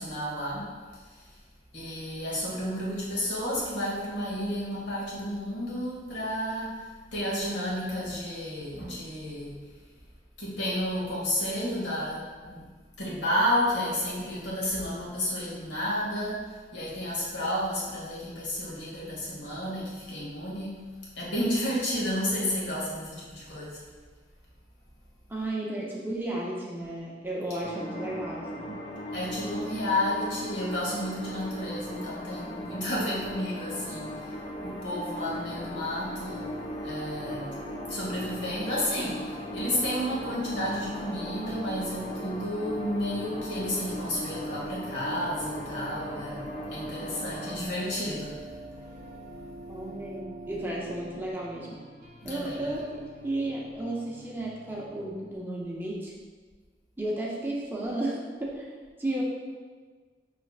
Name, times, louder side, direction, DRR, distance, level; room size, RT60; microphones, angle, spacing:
voice 1, 0.0-1.3 1.7-9.6 10.4-12.7 13.0-20.8 21.1-23.8 29.1-36.5 36.8-37.6 37.9-48.4 52.2-52.7, left 1 dB, 90° left, -5 dB, 1.3 m, -31 dB
voice 2, 25.3-28.8 49.7-51.7 52.2-56.1 57.0-58.7 59.0-59.2, right 1 dB, 10° right, -4 dB, 0.6 m, -33 dB
sound 1, 27.6-47.6, equal, 30° left, 0.4 m, -38 dB
sound 2, 35.5-51.3, right 1 dB, 65° right, 0.5 m, -45 dB
sound 3, 38.3-55.3, left 1 dB, 40° right, 0.8 m, -52 dB
5.6 x 3.2 x 2.4 m, 1.5 s
head